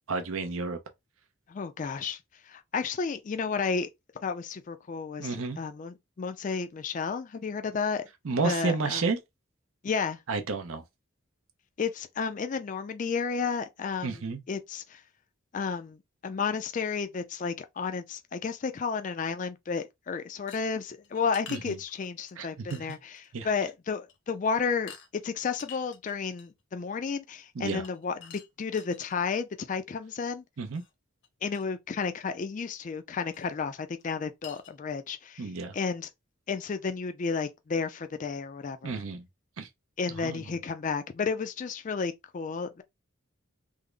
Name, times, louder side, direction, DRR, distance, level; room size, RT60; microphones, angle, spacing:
voice 1, 0.1-0.8 5.2-5.6 8.2-9.2 10.3-10.8 14.0-14.4 21.5-21.8 22.4-22.9 23.3-23.5 27.5-27.9 30.6-30.8 35.4-35.8 38.8-39.3 39.6-39.7 40.2-40.4, right 4 dB, 80° right, 0.7 m, -31 dB
voice 2, 1.5-2.2 2.5-3.9 4.2-8.0 8.4-9.0 9.8-10.2 11.8-14.2 14.5-15.0 15.5-16.0 16.2-23.2 23.4-30.4 31.4-36.1 36.5-39.0 40.0-42.8, left 5 dB, 40° left, 0.3 m, -32 dB
sound 1, 20.5-22.3 22.7-23.3 23.6-23.7 24.1-24.3 24.9-25.1 25.5-26.6 27.8-29.2 30.7-30.9 31.2-31.3 31.5-31.6 33.3-33.5 34.0-34.1 34.4-34.8, left 8 dB, 60° left, 0.7 m, -48 dB
3.6 x 2.0 x 3.3 m
head